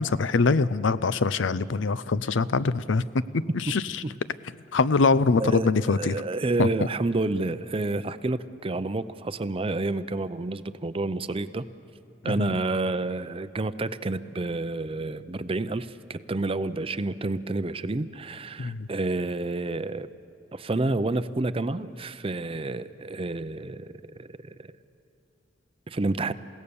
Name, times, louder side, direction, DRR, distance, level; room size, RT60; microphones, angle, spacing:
voice 1, 0.0-3.0 3.3-4.0 4.7-6.2 6.6-6.7 12.4-12.6 18.6-18.9, left 4 dB, 85° left, 16 dB, 0.6 m, -23 dB
voice 2, 5.4-11.6 12.2-20.1 20.5-24.7 25.9-26.3, right 2 dB, 30° right, 13 dB, 0.6 m, -29 dB
29.0 x 17.0 x 7.0 m, 2.6 s
head